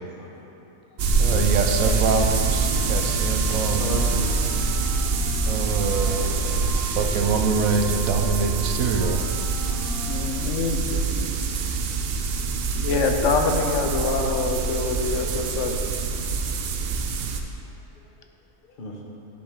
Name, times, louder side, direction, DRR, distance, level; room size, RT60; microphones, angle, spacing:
sound 1, 1.0-10.3, right 1 dB, 45° right, 1.2 m, -40 dB
sound 2, 1.0-17.4, right 4 dB, 65° right, 0.6 m, -25 dB
voice 1, 1.2-3.8 5.5-9.2, right 4 dB, 80° right, 5 dB, 1.1 m, -25 dB
voice 2, 3.4-4.4 10.9-11.3 18.8-19.0, left 2 dB, 45° left, -1 dB, 1.0 m, -34 dB
voice 3, 10.1-10.8 12.7-15.8, left 4 dB, 70° left, 4 dB, 0.9 m, -25 dB
10.5 x 5.1 x 3.6 m, 2.7 s
omnidirectional pair, 1.4 m